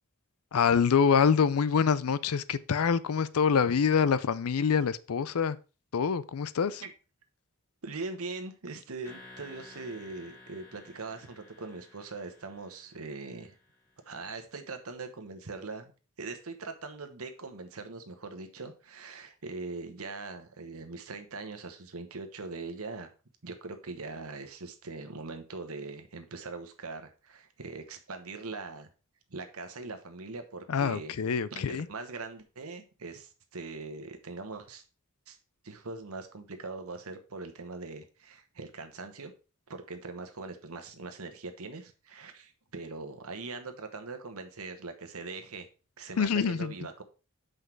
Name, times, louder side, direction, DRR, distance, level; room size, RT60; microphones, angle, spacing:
voice 1, 0.5-5.6 5.9-6.8 30.7-31.9 46.2-46.7, left 6 dB, 75° left, 0.5 m, -25 dB
voice 2, 7.8-13.6 14.0-15.9 16.2-23.1 23.4-28.9 29.3-31.1 31.5-34.8 35.3-35.4 35.6-39.3 39.7-45.7 46.0-47.0, right 3 dB, 70° right, 1.2 m, -41 dB
sound 1, 9.0-14.0, left 2 dB, 40° left, 2.9 m, -54 dB
6.2 x 5.2 x 4.6 m
head